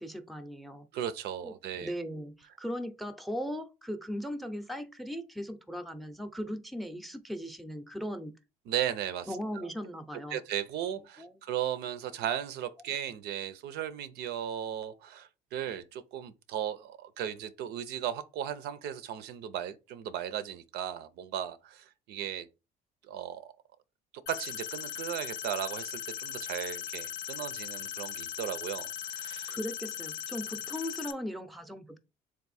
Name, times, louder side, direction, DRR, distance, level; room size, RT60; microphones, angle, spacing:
voice 1, 0.0-0.9 1.4-8.3 9.3-10.4 11.2-11.3 29.5-32.0, equal, ahead, 0.5 m, -38 dB
voice 2, 0.9-1.9 8.7-9.3 9.5-9.7 10.3-22.5 23.0-23.5 24.3-29.6, right 10 dB, 75° right, 0.5 m, -36 dB
sound 1, 24.3-31.1, left 10 dB, 75° left, 0.5 m, -39 dB
3.5 x 2.5 x 4.1 m
cardioid pair, 110°, 17 cm